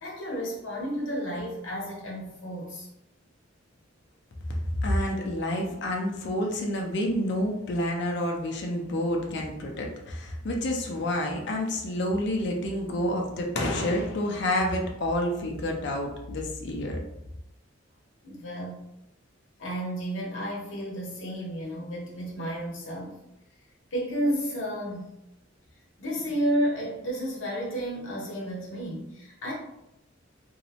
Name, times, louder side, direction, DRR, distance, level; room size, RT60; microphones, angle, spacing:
voice 1, 0.0-2.9 18.2-18.9 19.6-23.2 23.9-25.1 26.0-29.5, equal, 80° left, -3 dB, 0.9 m, -32 dB
voice 2, 4.5-17.0, left 1 dB, 60° left, 1 dB, 0.5 m, -29 dB
2.6 x 2.0 x 2.8 m, 0.85 s
head